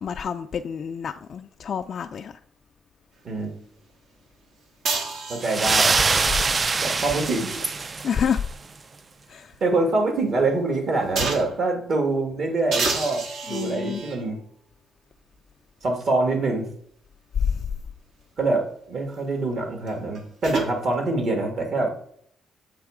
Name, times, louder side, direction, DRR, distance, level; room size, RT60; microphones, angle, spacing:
voice 1, 0.0-2.3 8.0-8.5 9.3-9.5 13.5-14.0 17.4-17.6, left 7 dB, 55° left, 0.3 m, -27 dB
sound 1, 4.8-5.8 7.6-9.1 9.5-9.6 11.2-11.7 12.7-14.3 15.2-15.3 19.9-20.7, right 4 dB, 70° right, 1.3 m, -30 dB
voice 2, 5.3-6.0 6.8-7.9 9.6-13.2 13.5-14.4 15.8-16.7 18.4-21.9, right 2 dB, 55° right, 1.6 m, -25 dB
sound 2, 5.4-8.5, right 4 dB, 35° right, 0.3 m, -23 dB
7.8 x 3.2 x 4.8 m
cardioid pair, 90°, 0 cm